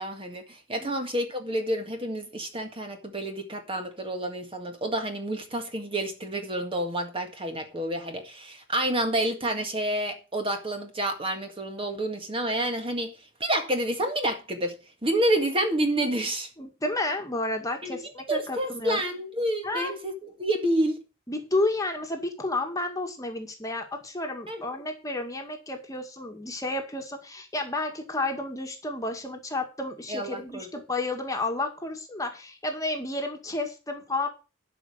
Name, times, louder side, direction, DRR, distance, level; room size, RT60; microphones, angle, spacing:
voice 1, 0.0-13.1 13.4-14.8 15.0-16.5 17.8-18.0 18.3-21.0 24.5-24.6 30.1-30.7, right 1 dB, 25° right, 1.9 m, -29 dB
voice 2, 16.6-19.0 19.6-19.9 21.3-34.3, left 2 dB, 15° left, 1.9 m, -31 dB
12.0 x 5.3 x 7.9 m
head